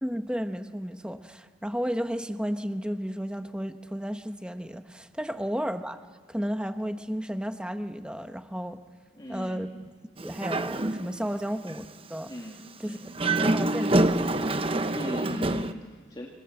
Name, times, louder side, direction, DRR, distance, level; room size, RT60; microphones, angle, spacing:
voice 1, 0.0-6.0 6.3-8.8 9.3-9.7 10.2-12.3 12.8-13.0 13.2-14.5, equal, 5° right, 8 dB, 1.0 m, -33 dB
voice 2, 9.1-9.6 12.3-13.0 14.9-16.3, left 1 dB, 20° left, -1 dB, 2.1 m, -39 dB
Dog, 10.2-11.3 11.7-11.8 13.0-15.7, right 2 dB, 30° right, 0.9 m, -26 dB
28.0 x 25.5 x 7.8 m, 1.5 s
head